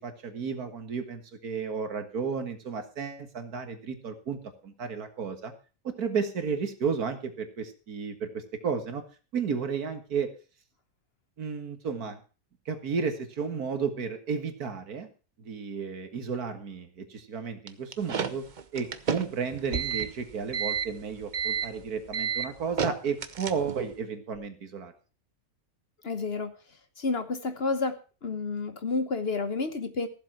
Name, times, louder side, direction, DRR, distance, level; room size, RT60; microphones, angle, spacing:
voice 1, 0.0-5.5 5.8-9.0 9.3-10.3 11.4-12.2 12.7-15.1 15.4-18.5 18.7-24.9, right 5 dB, 75° right, 8 dB, 2.1 m, -33 dB
sound 1, 17.7-23.9, right 7 dB, 40° right, 0.7 m, -31 dB
voice 2, 26.0-28.0 28.2-30.1, left 4 dB, 45° left, 10 dB, 1.2 m, -30 dB
14.5 x 7.6 x 5.8 m, 0.35 s
omnidirectional pair, 1.6 m